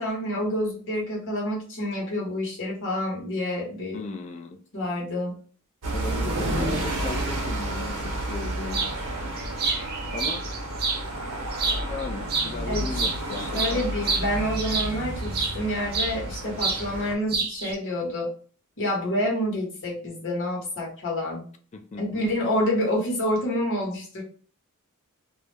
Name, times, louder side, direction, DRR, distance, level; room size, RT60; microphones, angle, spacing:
voice 1, 0.0-4.0 4.7-5.3 12.7-13.0 13.4-18.3 18.8-21.5 22.0-24.2, left 1 dB, 60° left, -3 dB, 1.0 m, -28 dB
voice 2, 3.9-4.6 5.9-9.1 10.1-10.4 11.9-13.8 21.7-22.2, left 3 dB, 30° left, 6 dB, 0.3 m, -36 dB
sound 1, 5.8-17.1, right 1 dB, 90° right, 0.7 m, -31 dB
sound 2, 8.7-8.9 9.4-11.0 11.5-12.0 12.3-15.6 15.9-16.8 17.1-17.7, right 4 dB, 45° right, 0.5 m, -28 dB
2.3 x 2.1 x 3.2 m, 0.42 s
head